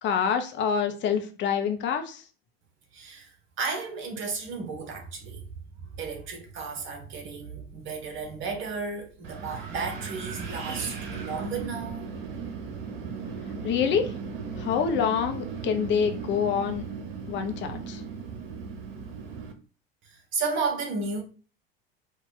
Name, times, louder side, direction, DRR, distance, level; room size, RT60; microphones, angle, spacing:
voice 1, 0.0-2.2 13.6-14.1 14.6-16.8 17.3-18.0, left 7 dB, 40° left, 0.7 m, -26 dB
voice 2, 2.9-3.3 3.6-5.4 6.0-12.1 20.3-21.2, right 4 dB, 40° right, 1.2 m, -33 dB
Wind, 9.2-19.5, right 5 dB, 65° right, 0.9 m, -37 dB
4.2 x 2.4 x 3.8 m
figure-of-eight pair, 70°, 30 cm